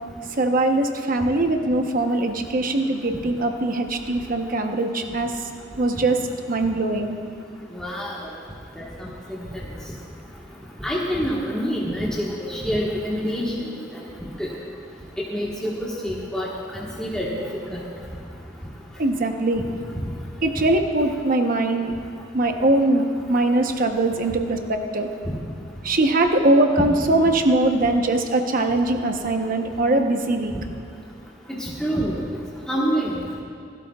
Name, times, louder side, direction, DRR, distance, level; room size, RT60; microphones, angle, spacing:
voice 1, 0.4-5.3 5.8-6.2 6.5-7.2 19.0-19.6 20.4-21.9 22.3-25.1 25.8-30.5, right 2 dB, 50° right, 4 dB, 1.0 m, -21 dB
voice 2, 7.7-8.3 9.0-9.6 10.8-13.5 14.4-14.5 15.2-17.3 17.7-17.8 31.6-32.2 32.7-33.1, equal, 5° left, -6 dB, 1.5 m, -27 dB
28.0 x 12.0 x 2.4 m, 2.4 s
head